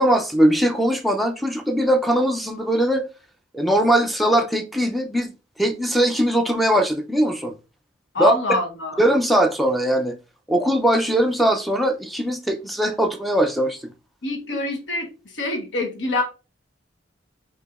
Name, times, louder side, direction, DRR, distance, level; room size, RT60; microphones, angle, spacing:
voice 1, 0.0-3.1 3.5-5.3 5.6-7.5 8.2-8.3 9.0-10.1 10.5-13.8, right 1 dB, ahead, 0.4 m, -20 dB
voice 2, 8.1-9.0 14.2-15.1 15.3-16.2, left 2 dB, 70° left, 1.0 m, -25 dB
4.8 x 2.7 x 2.3 m
head